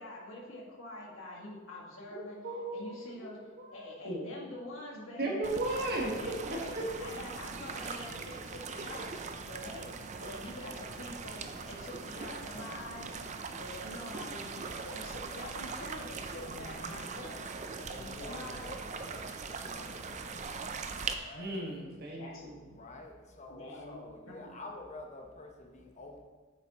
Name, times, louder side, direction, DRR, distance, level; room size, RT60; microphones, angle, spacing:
voice 1, 0.0-2.4 2.7-3.4 3.7-5.4 5.7-9.2 9.5-9.9 10.2-18.8 22.2-22.5 23.5-24.6, left 1 dB, 80° left, -3 dB, 1.9 m, -46 dB
voice 2, 2.1-3.3 3.6-3.8 4.0-4.3 5.2-6.1 6.5-6.8 16.5-17.0 18.0-18.4 21.3-22.6, right 1 dB, 50° right, -2 dB, 1.7 m, -37 dB
sound 1, 5.4-21.1, right 4 dB, 35° right, 0.5 m, -41 dB
voice 3, 17.6-21.6 22.7-26.2, left 2 dB, 35° left, 2 dB, 0.9 m, -49 dB
8.5 x 7.3 x 3.0 m, 1.3 s
head